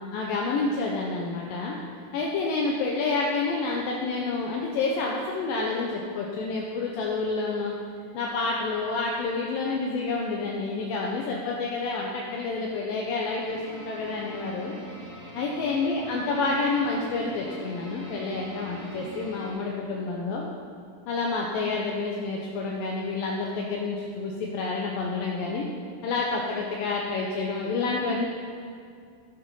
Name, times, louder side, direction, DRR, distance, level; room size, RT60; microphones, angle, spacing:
voice 1, 0.1-1.8 2.1-7.8 8.1-14.8 15.3-20.4 21.1-25.7 26.0-28.3, left 3 dB, 75° left, -2 dB, 2.2 m, -29 dB
sound 1, 13.4-19.5, equal, 10° right, 2.8 m, -42 dB
12.0 x 8.7 x 5.5 m, 2.2 s
omnidirectional pair, 5.0 m